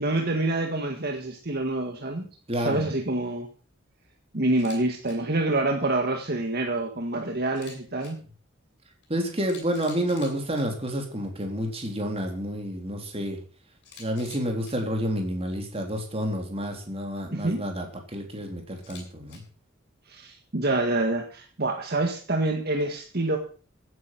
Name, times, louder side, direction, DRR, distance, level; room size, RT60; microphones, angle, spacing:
voice 1, 0.0-2.3 2.6-3.5 4.3-8.2 17.3-17.6 20.1-23.4, right 2 dB, 50° right, 3 dB, 1.8 m, -27 dB
voice 2, 2.5-2.9 9.1-13.4 14.0-19.4, equal, 30° right, 3 dB, 3.6 m, -29 dB
Camera, 4.5-4.8 5.0-5.1 7.5-8.1 9.0-9.1 9.4-10.6 13.8-14.7 18.8-19.4, left 5 dB, 55° left, 7.7 m, -47 dB
16.0 x 9.5 x 6.1 m, 0.41 s
head